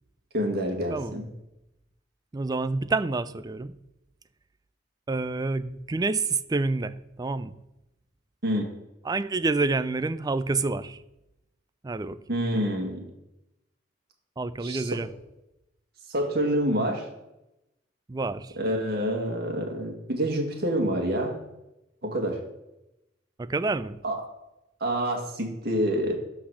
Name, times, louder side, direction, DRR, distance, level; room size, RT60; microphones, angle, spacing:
voice 1, 0.3-1.2 8.4-8.7 12.3-13.0 14.6-14.8 16.1-17.1 18.6-21.4 22.0-22.4 24.0-24.2 24.8-26.1, equal, 55° right, 1.9 m, -27 dB
voice 2, 0.9-1.2 2.3-3.7 5.1-7.6 9.0-11.0 11.8-12.2 14.4-15.1 18.1-18.6 23.4-24.0, right 3 dB, 20° right, 0.4 m, -28 dB
11.5 x 4.1 x 6.4 m
head